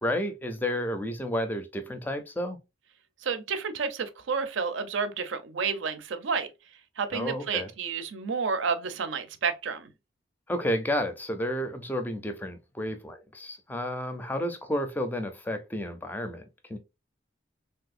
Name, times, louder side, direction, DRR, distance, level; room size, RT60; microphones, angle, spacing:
voice 1, 0.0-2.6 7.1-7.7 10.5-16.4 16.7-16.8, equal, 10° left, 0.4 m, -31 dB
voice 2, 3.2-6.5 7.0-9.9, right 5 dB, 90° right, 0.5 m, -30 dB
3.4 x 2.7 x 2.4 m
head